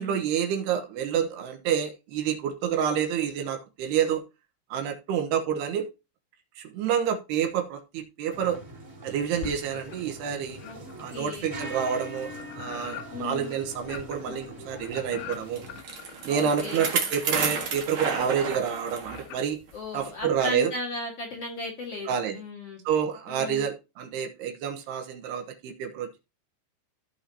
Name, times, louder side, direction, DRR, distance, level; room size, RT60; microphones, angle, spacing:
voice 1, 0.0-4.2 4.7-5.9 6.6-8.6 9.0-10.6 11.0-15.6 16.2-19.6 19.9-20.7 22.1-22.4 22.9-26.2, right 8 dB, 75° right, 5 dB, 3.2 m, -28 dB
sound 1, 8.3-15.8, equal, 10° right, 2.5 m, -42 dB
sound 2, 9.4-10.2 10.6-20.4, left 10 dB, 90° left, 3.4 m, -44 dB
voice 2, 11.1-11.5 13.1-13.5 16.3-16.8 19.7-22.8 23.3-23.7, left 2 dB, 45° left, -1 dB, 2.4 m, -36 dB
Bicycle, 15.3-19.3 19.7-19.8 20.6-20.7, right 5 dB, 55° right, 1.5 m, -31 dB
15.5 x 5.7 x 2.9 m, 0.26 s
omnidirectional pair, 4.9 m